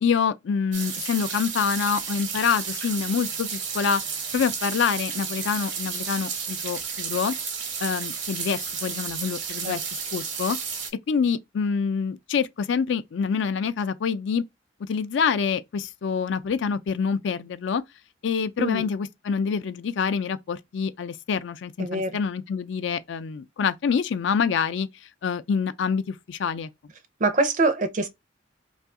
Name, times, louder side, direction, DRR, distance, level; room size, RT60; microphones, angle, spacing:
voice 1, 0.0-4.0 4.3-7.3 7.8-9.8 10.1-10.6 11.1-14.4 14.8-17.8 18.2-24.9 25.2-26.7, left 6 dB, 75° left, 0.4 m, -26 dB
sound 1, 0.7-10.9, right 6 dB, 75° right, 0.8 m, -32 dB
voice 2, 18.6-18.9 21.8-22.1 27.2-28.1, right 2 dB, 45° right, 0.5 m, -24 dB
2.7 x 2.4 x 3.6 m
head